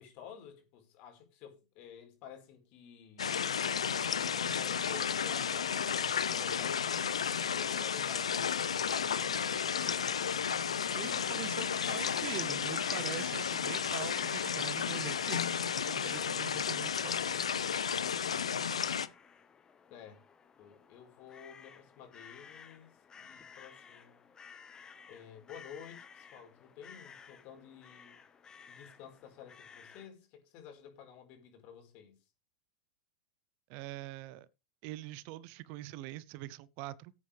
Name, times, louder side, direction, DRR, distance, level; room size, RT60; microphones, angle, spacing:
voice 1, 0.0-3.3 4.2-10.1 19.9-20.2 20.6-24.2 25.1-28.2 28.7-32.2, left 8 dB, 50° left, 4.7 m, -52 dB
sound 1, 3.2-19.1, left 7 dB, 85° left, 0.7 m, -33 dB
sound 2, 10.4-30.1, left 6 dB, 25° left, 1.4 m, -55 dB
voice 2, 10.9-17.1 33.7-34.5 34.8-37.1, right 15 dB, 50° right, 0.7 m, -43 dB
16.5 x 8.5 x 3.4 m
hypercardioid pair, 95°, 3 cm